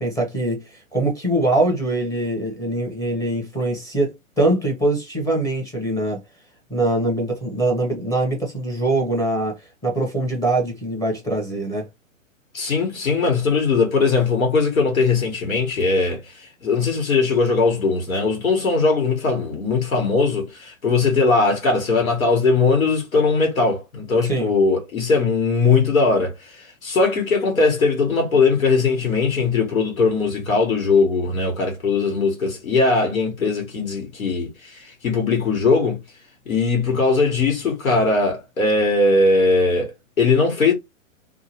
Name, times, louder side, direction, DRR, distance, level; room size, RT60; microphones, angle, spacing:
voice 1, 0.0-6.2 6.7-11.9 24.2-24.5, right 2 dB, 10° left, 0.7 m, -23 dB
voice 2, 12.5-26.5 26.8-36.0 36.5-40.7, left 4 dB, 85° left, 1.4 m, -20 dB
2.7 x 2.3 x 2.8 m
hypercardioid pair, 125°, 41 cm